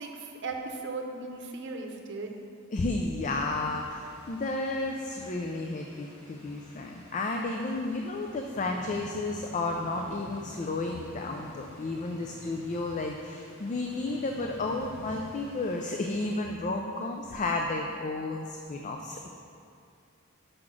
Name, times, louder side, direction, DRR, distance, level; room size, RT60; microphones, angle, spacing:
voice 1, 0.0-2.4, right 3 dB, 60° right, 2 dB, 0.8 m, -37 dB
voice 2, 2.7-19.3, left 2 dB, 35° left, 2 dB, 0.4 m, -32 dB
sound 1, 3.2-16.4, equal, 55° left, 1.7 m, -50 dB
5.9 x 5.0 x 6.0 m, 2.5 s
head